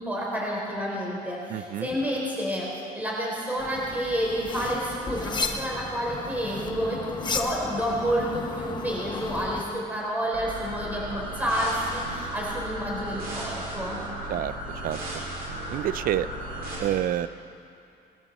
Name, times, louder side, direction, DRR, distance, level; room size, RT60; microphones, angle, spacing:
voice 1, 0.0-2.7 2.9-14.0, equal, 10° right, -4 dB, 3.6 m, -29 dB
voice 2, 1.5-1.9 14.3-14.5 14.8-15.0 15.7-16.3 16.8-17.3, right 12 dB, 55° right, 15 dB, 0.5 m, -27 dB
sound 1, 3.6-9.6, left 4 dB, 25° left, 1.1 m, -34 dB
sound 2, 10.3-16.7, right 1 dB, 75° right, 4.7 m, -35 dB
20.0 x 13.0 x 4.2 m, 2.5 s
cardioid pair, 110°, 17 cm